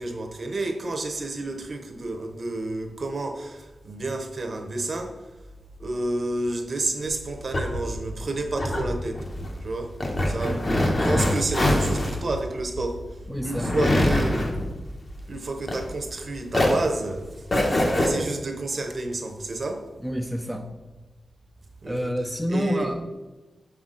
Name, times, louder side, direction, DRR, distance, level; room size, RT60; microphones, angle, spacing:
voice 1, 0.0-5.3 5.8-9.3 9.6-9.9 10.2-13.2 13.4-14.5 15.3-19.8 21.8-22.1 22.5-22.9, right 2 dB, 40° right, 5 dB, 0.8 m, -30 dB
sound 1, 7.1-16.2 16.5-18.1, left 1 dB, 30° left, 0.9 m, -25 dB
voice 2, 10.4-10.8 13.3-14.5 20.0-20.7 21.9-23.0, equal, 5° left, 4 dB, 0.4 m, -29 dB
6.8 x 5.6 x 3.8 m, 1.1 s
wide cardioid pair, 170°, 0 cm